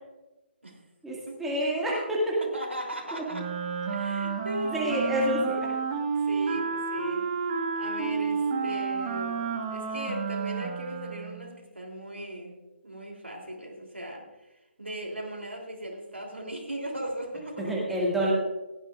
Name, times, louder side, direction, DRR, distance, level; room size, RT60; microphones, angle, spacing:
voice 1, 1.0-2.4 3.1-3.2 4.6-5.8 17.6-18.3, equal, 5° right, -5 dB, 2.1 m, -28 dB
voice 2, 2.5-3.4 3.9-5.2 6.1-7.3 7.7-9.4 9.7-12.6 12.8-14.2 14.8-17.9, right 1 dB, 80° right, 0 dB, 3.3 m, -37 dB
Wind instrument woodwind instrument, 3.3-11.5, right 5 dB, 25° right, 1.6 m, -31 dB
17.0 x 12.0 x 2.5 m, 1.1 s
figure-of-eight pair, 140°, 6 cm